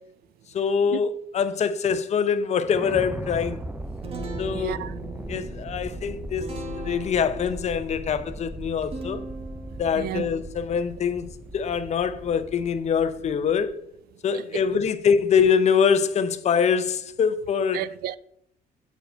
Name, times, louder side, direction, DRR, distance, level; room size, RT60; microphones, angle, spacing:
voice 1, 0.5-3.6 4.4-4.8 5.3-6.4 6.7-9.2 9.8-11.3 11.5-13.7 14.2-17.8, left 6 dB, 40° left, 0.6 m, -24 dB
sound 1, 2.6-13.7, right 1 dB, 10° right, 0.5 m, -38 dB
Guitar, 3.6-13.3, right 1 dB, 35° right, 1.3 m, -41 dB
voice 2, 4.5-4.9 10.0-10.3 17.7-18.2, right 12 dB, 65° right, 0.4 m, -32 dB
8.0 x 4.8 x 4.5 m
cardioid pair, 110°, 17 cm